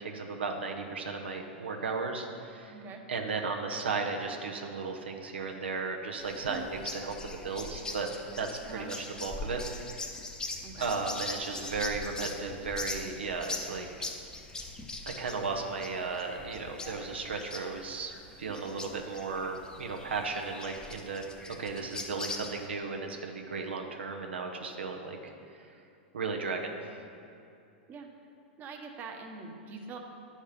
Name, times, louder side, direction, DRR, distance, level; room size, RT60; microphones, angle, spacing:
voice 1, 0.0-2.8 3.1-7.1 7.4-8.1 8.4-9.6 10.8-13.9 15.1-18.1 18.4-25.3 26.1-26.8, right 4 dB, 90° right, 2 dB, 0.8 m, -35 dB
voice 2, 2.7-3.0 6.5-6.7 8.7-8.9 10.6-10.9 18.5-18.6 27.9-28.1 28.6-30.0, right 4 dB, 30° right, 2 dB, 0.9 m, -43 dB
sound 1, 6.2-22.7, left 2 dB, 10° left, 0.7 m, -41 dB
10.0 x 4.3 x 5.0 m, 2.7 s
hypercardioid pair, 115°, 6 cm